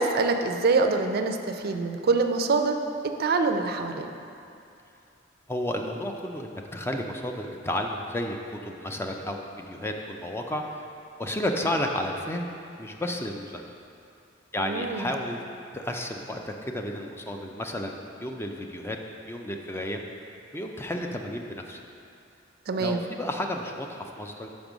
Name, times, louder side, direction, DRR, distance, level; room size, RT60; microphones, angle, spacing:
voice 1, 0.0-2.8 3.2-4.1 14.6-15.1 22.7-23.0, right 3 dB, 55° right, 6 dB, 0.4 m, -25 dB
voice 2, 5.5-10.8 11.2-12.5 12.8-13.6 14.5-15.4 15.7-19.0 19.3-20.0 20.5-21.8 22.8-24.5, left 1 dB, 15° left, 3 dB, 0.4 m, -32 dB
5.2 x 5.2 x 6.0 m, 2.6 s
head